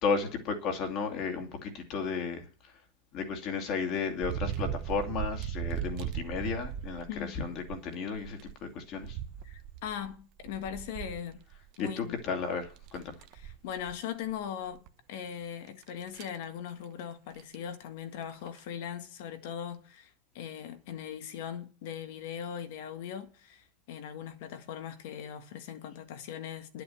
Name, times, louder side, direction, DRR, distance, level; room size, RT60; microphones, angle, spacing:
voice 1, 0.0-2.4 3.1-7.0 7.4-9.2 11.8-13.1, left 5 dB, 35° left, 2.6 m, -33 dB
sound 1, 4.2-7.8 8.2-11.8 12.2-12.3 12.7-14.0 14.3-14.4 14.9-15.0 15.8-16.4 17.4-17.6 18.3-18.6, right 10 dB, 40° right, 0.9 m, -38 dB
voice 2, 7.1-7.4 9.4-11.4 11.8-12.2 13.3-26.8, left 9 dB, 55° left, 1.7 m, -40 dB
11.5 x 7.8 x 7.8 m
supercardioid pair, 165°, 0 cm